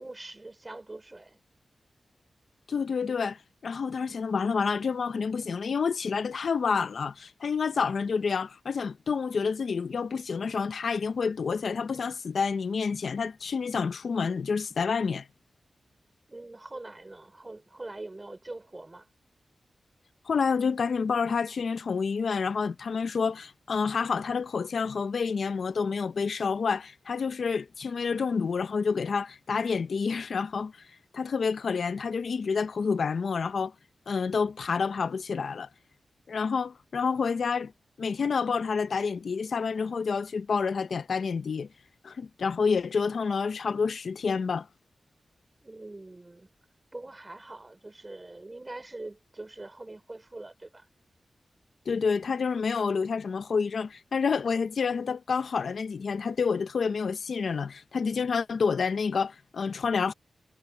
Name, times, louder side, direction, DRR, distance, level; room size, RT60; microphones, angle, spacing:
voice 1, 0.0-1.4 16.3-19.1 45.6-46.5 46.9-50.9, right 2 dB, 25° right, 4.6 m, -43 dB
voice 2, 2.7-15.3 20.3-30.7 31.1-33.7 34.1-35.7 36.3-37.7 38.0-41.7 42.0-44.7 51.9-60.1, left 5 dB, 75° left, 0.7 m, -28 dB
wide cardioid pair, 105°, 0 cm